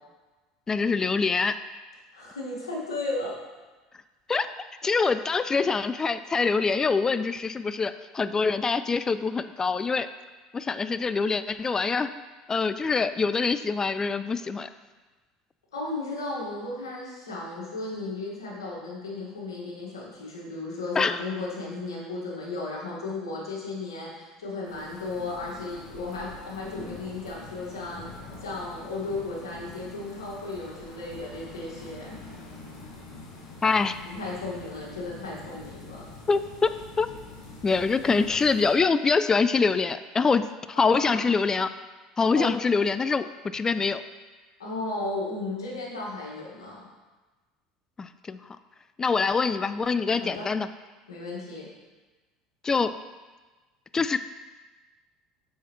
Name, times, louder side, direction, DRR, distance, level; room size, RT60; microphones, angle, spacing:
voice 1, 0.7-1.6 4.3-4.5 4.8-10.1 10.5-12.1 12.5-14.7 20.9-21.2 33.6-34.0 36.3-37.1 37.6-40.5 40.8-41.7 42.2-43.3 43.5-44.0 48.0-48.4 49.0-50.7 52.6-52.9 53.9-54.2, left 4 dB, 25° left, 12 dB, 0.3 m, -24 dB
voice 2, 2.1-3.4 15.7-28.1 28.4-32.2 34.0-36.1 40.7-41.2 42.3-42.6 44.6-46.9 50.2-50.5 51.1-51.7, left 2 dB, 85° left, -5 dB, 1.7 m, -35 dB
sound 1, 24.6-38.7, left 3 dB, 70° left, 1.7 m, -45 dB
7.1 x 5.7 x 3.0 m, 1.3 s
hypercardioid pair, 75°, 2 cm